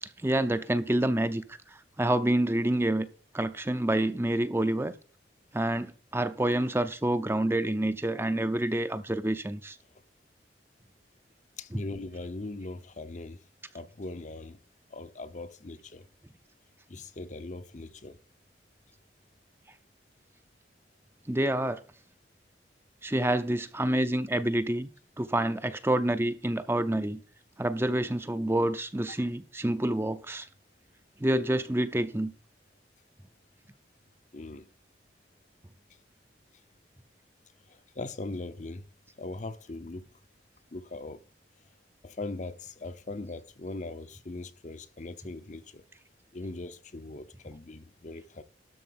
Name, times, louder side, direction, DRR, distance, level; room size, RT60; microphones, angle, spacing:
voice 1, 0.0-3.1 3.3-4.9 5.5-9.8 11.7-11.8 21.3-21.8 23.0-24.9 25.2-27.2 27.6-30.5 31.2-32.3, right 1 dB, 15° right, 0.6 m, -28 dB
voice 2, 11.6-13.4 13.7-14.6 14.9-16.1 16.9-18.2 34.3-34.7 37.7-38.9 39.2-40.1 40.7-41.2 42.0-45.8 46.3-48.4, left 2 dB, 40° left, 0.7 m, -40 dB
12.5 x 4.5 x 7.7 m
head